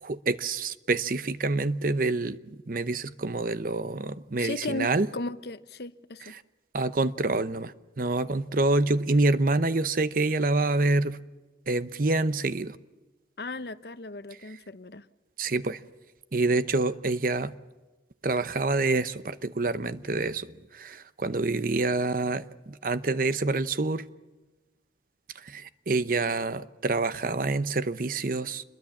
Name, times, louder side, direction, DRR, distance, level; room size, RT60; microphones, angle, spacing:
voice 1, 0.0-2.4 2.7-5.1 6.7-11.2 11.7-12.8 15.4-15.8 16.3-17.5 18.2-24.0 25.4-28.6, right 2 dB, 50° right, 0.8 m, -27 dB
voice 2, 4.4-6.3 13.4-15.1, left 2 dB, 60° left, 0.8 m, -36 dB
27.0 x 22.0 x 7.2 m
head